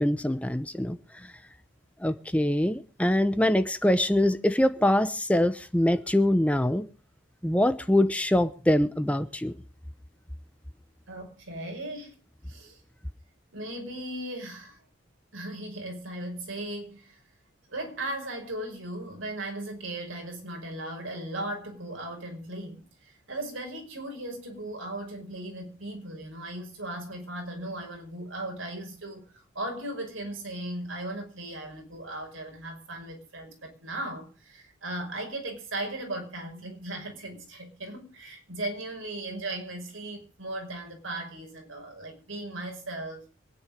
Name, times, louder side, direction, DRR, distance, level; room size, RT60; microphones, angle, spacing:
voice 1, 0.0-1.3 2.0-6.9 7.4-9.5, left 1 dB, 5° left, 0.9 m, -24 dB
voice 2, 11.1-12.1 12.5-12.8 13.5-14.8 15.3-17.2 17.7-43.2, right 1 dB, 90° right, 5.6 m, -37 dB
24.5 x 9.8 x 5.1 m
head